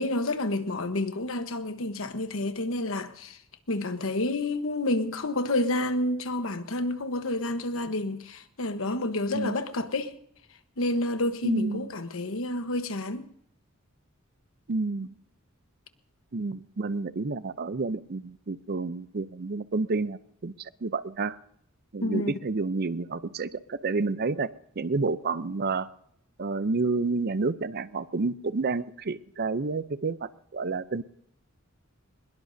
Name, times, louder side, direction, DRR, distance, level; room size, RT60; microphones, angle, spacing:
voice 1, 0.0-3.4 3.7-10.1 10.8-13.3 22.0-22.4, left 2 dB, 75° left, 1.2 m, -29 dB
voice 2, 11.4-11.9 14.7-15.1 16.3-21.4 21.9-24.5 24.8-25.9 26.4-31.0, right 3 dB, 50° right, 0.6 m, -30 dB
22.5 x 21.0 x 2.7 m
head